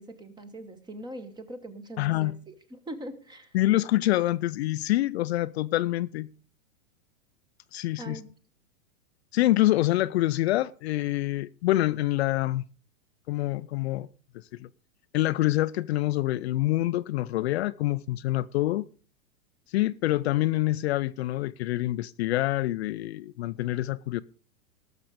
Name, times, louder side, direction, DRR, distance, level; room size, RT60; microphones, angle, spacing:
voice 1, 0.0-3.6 8.0-8.3, right 1 dB, 10° right, 1.0 m, -42 dB
voice 2, 2.0-2.3 3.5-6.3 7.7-8.2 9.3-12.7 13.3-14.1 14.3-14.7 15.1-18.9 19.7-24.2, left 16 dB, 50° left, 0.5 m, -26 dB
18.0 x 6.7 x 5.0 m
hypercardioid pair, 145°, 44 cm